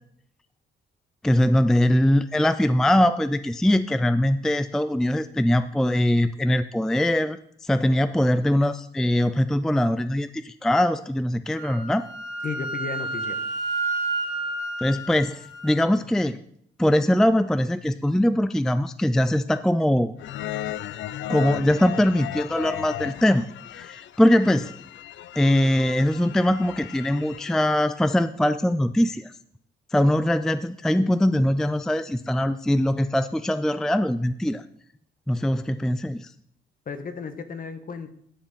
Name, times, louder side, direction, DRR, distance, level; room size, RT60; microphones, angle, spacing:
voice 1, 1.2-12.1 14.8-16.4 16.8-20.1 21.3-23.5 23.7-24.7 25.4-29.3 29.9-34.6 35.3-36.3, left 1 dB, 5° left, 12 dB, 0.4 m, -22 dB
Wind instrument woodwind instrument, 11.6-15.7, right 2 dB, 80° right, 1.6 m, -30 dB
voice 2, 12.4-13.4 36.9-38.2, left 5 dB, 45° left, 9 dB, 1.3 m, -34 dB
sound 1, 20.2-27.5, left 13 dB, 70° left, 0.5 m, -36 dB
10.5 x 7.3 x 5.4 m, 0.69 s
cardioid pair, 90°, 20 cm